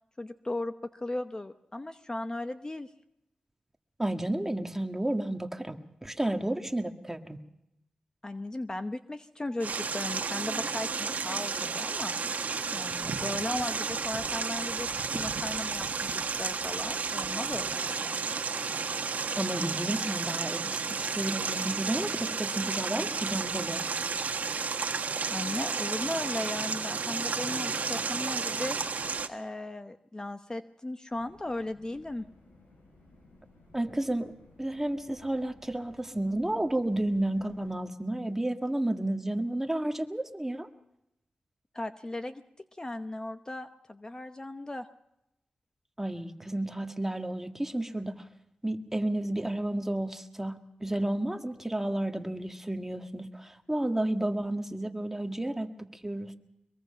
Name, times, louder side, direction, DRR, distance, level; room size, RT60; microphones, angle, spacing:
voice 1, 0.2-2.9 8.2-12.2 12.7-14.9 15.1-18.2 25.3-28.8 29.3-32.2 41.7-42.4 42.7-44.9, left 2 dB, 25° left, 9 dB, 0.9 m, -36 dB
voice 2, 4.0-7.4 19.4-23.9 33.7-34.3 34.6-40.7 46.0-48.2 48.6-50.6 50.8-56.3, right 1 dB, 15° right, 6 dB, 1.8 m, -32 dB
sound 1, 9.6-29.3, right 5 dB, 70° right, 1.4 m, -32 dB
sound 2, 31.1-37.7, left 2 dB, 85° left, 7.3 m, -58 dB
22.5 x 22.5 x 5.7 m, 0.87 s
cardioid pair, 70°, 3 cm